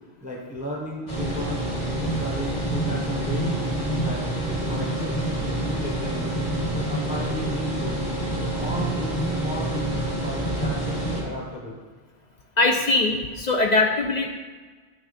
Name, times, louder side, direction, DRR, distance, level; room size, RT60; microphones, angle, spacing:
voice 1, 0.2-1.6 1.9-4.3 4.7-6.3 6.7-8.1 8.4-11.8, equal, 10° right, -3 dB, 1.0 m, -34 dB
sound 1, 1.1-11.2, right 1 dB, 35° left, 1.9 m, -27 dB
voice 2, 12.6-14.3, left 2 dB, 50° left, 3 dB, 0.7 m, -21 dB
9.8 x 5.9 x 4.1 m, 1.4 s
omnidirectional pair, 1.1 m